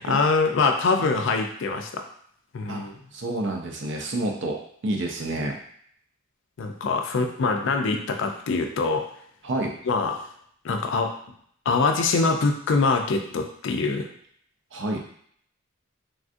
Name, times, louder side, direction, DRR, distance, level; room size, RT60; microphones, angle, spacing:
voice 1, 0.1-2.0 2.5-3.0 6.6-9.1 9.9-10.2 10.6-11.1 11.7-14.1, left 4 dB, 60° left, 5 dB, 0.4 m, -24 dB
voice 2, 3.1-5.6 9.4-9.7 14.7-15.0, right 1 dB, 55° right, 2 dB, 0.5 m, -29 dB
3.4 x 2.3 x 2.5 m, 0.63 s
head